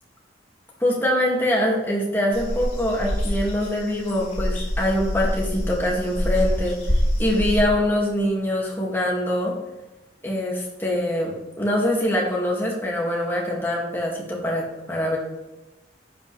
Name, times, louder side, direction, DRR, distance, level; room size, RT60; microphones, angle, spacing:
voice 1, 0.8-6.8 7.2-9.5 10.2-15.2, left 1 dB, 10° left, -3 dB, 2.2 m, -24 dB
sound 1, 2.3-7.6, equal, 50° left, 3.9 m, -25 dB
11.0 x 8.8 x 3.4 m, 1.1 s
head